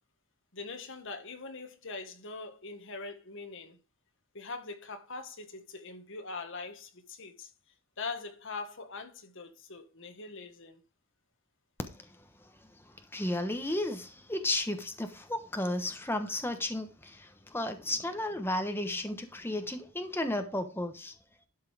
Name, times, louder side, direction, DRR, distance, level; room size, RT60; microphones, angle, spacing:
voice 1, 0.5-3.8 4.3-7.5 8.0-10.8, left 3 dB, 55° left, 1.7 m, -42 dB
voice 2, 13.1-21.1, left 1 dB, 10° left, 1.1 m, -33 dB
12.0 x 5.6 x 4.9 m
head